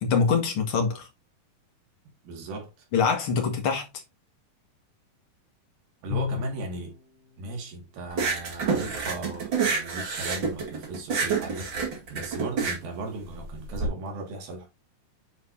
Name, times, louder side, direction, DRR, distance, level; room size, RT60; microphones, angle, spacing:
voice 1, 0.0-1.1 2.9-3.9, left 5 dB, 50° left, 1.9 m, -24 dB
voice 2, 2.2-2.7 6.0-7.0 7.4-14.7, right 3 dB, 80° right, 4.1 m, -37 dB
Bowed string instrument, 6.1-7.0, left 7 dB, 75° left, 3.2 m, -31 dB
sound 1, 8.1-13.9, right 5 dB, 40° right, 2.0 m, -28 dB
9.3 x 4.7 x 2.7 m
omnidirectional pair, 4.2 m